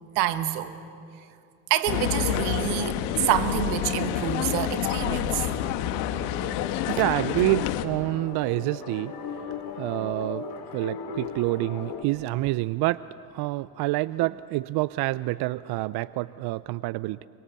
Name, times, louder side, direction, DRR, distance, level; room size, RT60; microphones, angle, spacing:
voice 1, 0.1-0.7 1.7-5.5, right 13 dB, 80° right, 10 dB, 1.7 m, -27 dB
sound 1, 1.9-7.9, left 12 dB, 75° left, 1.5 m, -28 dB
sound 2, 5.3-12.0, left 5 dB, 55° left, 3.1 m, -38 dB
voice 2, 6.7-9.5 9.8-13.0 13.3-17.3, right 18 dB, 55° right, 18 dB, 0.6 m, -28 dB
30.0 x 24.5 x 7.1 m, 2.5 s
hypercardioid pair, 75°, 46 cm